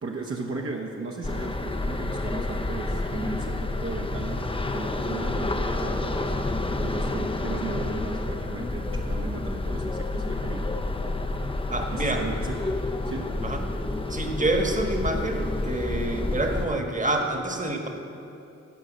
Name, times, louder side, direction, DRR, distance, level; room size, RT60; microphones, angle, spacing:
voice 1, 0.0-6.3 6.8-10.7 11.9-12.6 13.0-13.3, right 3 dB, 50° right, -2 dB, 1.0 m, -36 dB
sound 1, 1.2-16.7, left 2 dB, 20° left, 0.8 m, -29 dB
voice 2, 11.7-12.2 13.4-13.6 14.1-17.9, right 2 dB, 25° right, 3 dB, 1.5 m, -27 dB
16.0 x 5.4 x 6.3 m, 2.8 s
cardioid pair, 55°, 29 cm